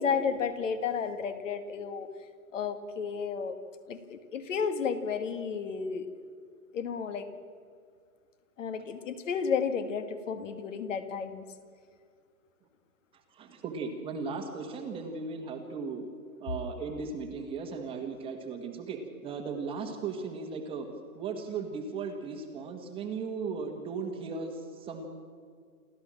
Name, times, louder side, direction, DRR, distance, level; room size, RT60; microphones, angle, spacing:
voice 1, 0.0-2.1 2.5-3.6 3.9-6.1 6.7-7.3 8.6-11.4, left 6 dB, 60° left, 10 dB, 2.0 m, -32 dB
voice 2, 13.3-16.1 16.4-20.9 21.1-25.1, right 5 dB, 10° right, 4 dB, 1.4 m, -37 dB
29.0 x 13.0 x 7.5 m, 2.2 s
hypercardioid pair, 155°, 44 cm